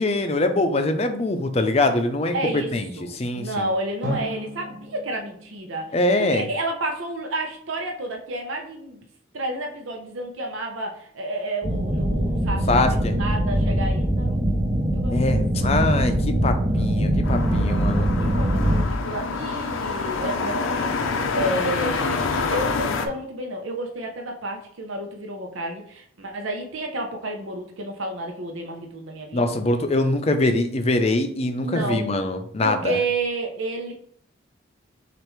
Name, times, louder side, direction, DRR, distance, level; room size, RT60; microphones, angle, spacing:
voice 1, 0.0-2.3 2.7-2.9 3.2-3.7 5.9-6.4 12.7-13.2 15.1-16.1 16.4-18.1 29.3-33.0, left 2 dB, 30° left, 7 dB, 0.5 m, -23 dB
voice 2, 2.3-9.0 9.3-14.4 14.9-15.7 16.7-16.8 17.4-20.9 21.3-29.5 31.6-32.1 32.6-33.9, right 1 dB, 90° right, 2 dB, 0.7 m, -31 dB
Drum, 4.0-6.9, right 1 dB, 55° right, 1.3 m, -36 dB
sound 1, 11.6-18.8, right 1 dB, 30° right, 0.7 m, -22 dB
sound 2, 17.2-23.1, left 4 dB, 90° left, 0.5 m, -27 dB
6.4 x 2.5 x 3.1 m, 0.62 s
head